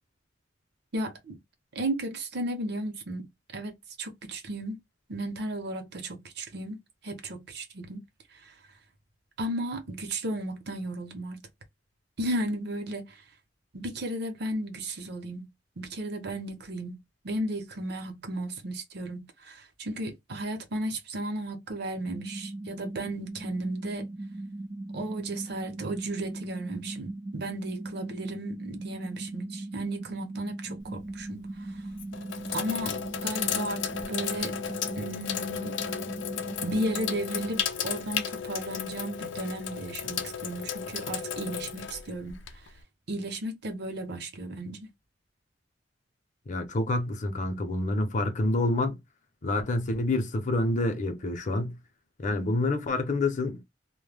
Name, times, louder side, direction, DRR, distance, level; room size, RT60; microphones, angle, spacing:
voice 1, 0.9-1.4 1.7-4.8 5.1-8.0 9.4-11.4 12.2-13.2 13.7-15.5 15.8-17.0 17.2-24.1 24.9-31.5 32.5-34.6 35.0-35.8 36.6-42.4 43.1-44.9, right 1 dB, 60° right, 0.7 m, -34 dB
sound 1, 22.1-37.6, right 2 dB, 20° right, 0.3 m, -39 dB
Sink (filling or washing), 30.8-31.2 31.9-42.8, left 8 dB, 85° left, 0.4 m, -34 dB
voice 2, 46.5-49.0 49.4-51.8 52.2-53.6, left 2 dB, 45° left, 0.6 m, -27 dB
2.1 x 2.0 x 3.2 m
head